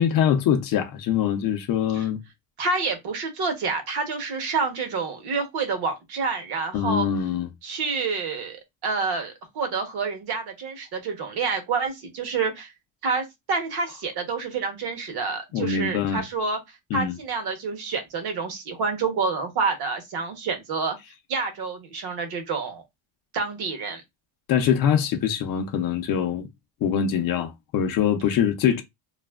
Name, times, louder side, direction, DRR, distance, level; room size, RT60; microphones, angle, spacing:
voice 1, 0.0-2.2 6.7-7.5 15.5-16.2 16.9-17.2 24.5-26.5 26.8-28.8, left 8 dB, 45° left, 0.5 m, -23 dB
voice 2, 2.6-7.1 7.6-12.7 13.0-16.6 16.9-21.0 21.3-22.8 23.3-24.0, right 4 dB, 50° right, 0.9 m, -28 dB
2.7 x 2.4 x 2.2 m
cardioid pair, 170°, 49 cm